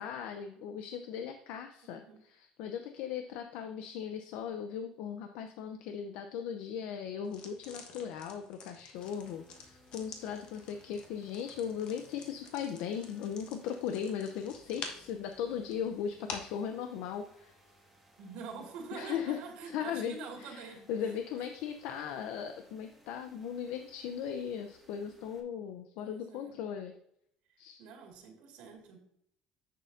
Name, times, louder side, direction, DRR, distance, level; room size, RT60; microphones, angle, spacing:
voice 1, 0.0-17.6 18.9-26.9 27.6-27.8, left 8 dB, 80° left, 7 dB, 0.6 m, -38 dB
sound 1, 7.2-16.6, left 5 dB, 50° left, 1.3 m, -49 dB
sound 2, 8.9-25.4, equal, ahead, 1.7 m, -63 dB
voice 2, 18.2-21.1 21.4-21.5 26.0-26.6 27.8-29.0, right 5 dB, 80° right, 0 dB, 2.1 m, -46 dB
9.9 x 6.7 x 2.6 m, 0.73 s
cardioid pair, 145°, 2 cm